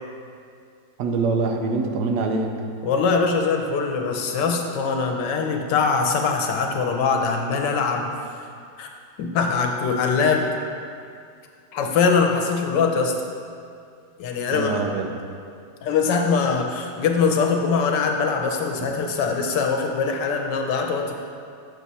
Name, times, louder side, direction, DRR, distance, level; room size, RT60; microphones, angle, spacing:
voice 1, 1.0-2.6 14.5-15.1 18.8-18.9, right 3 dB, 75° right, 4 dB, 1.2 m, -24 dB
voice 2, 2.8-8.1 8.8-8.9 9.2-10.5 11.7-13.1 14.2-14.8 15.8-21.3, left 5 dB, 85° left, 2 dB, 1.5 m, -22 dB
8.1 x 6.4 x 4.1 m, 2.3 s
omnidirectional pair, 1.9 m